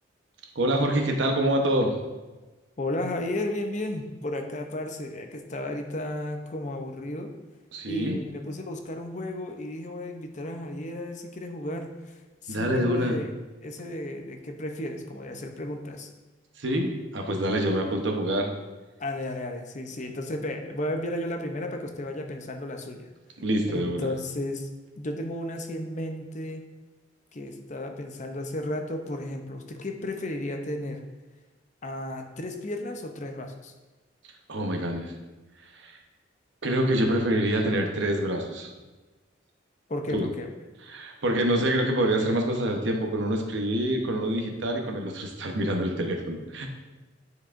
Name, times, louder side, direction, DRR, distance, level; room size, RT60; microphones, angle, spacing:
voice 1, 0.6-2.0 7.7-8.2 12.5-13.2 16.6-18.5 23.4-24.1 34.5-35.1 35.8-36.0 36.6-38.7 40.1-40.3 40.9-46.7, right 1 dB, 70° right, 3 dB, 0.9 m, -26 dB
voice 2, 2.8-7.3 7.9-13.3 13.6-16.1 19.0-23.1 23.6-24.7 25.0-26.6 27.3-31.0 31.8-33.7 39.9-40.5, left 1 dB, 40° left, 4 dB, 0.6 m, -33 dB
9.9 x 4.7 x 2.5 m, 1.2 s
head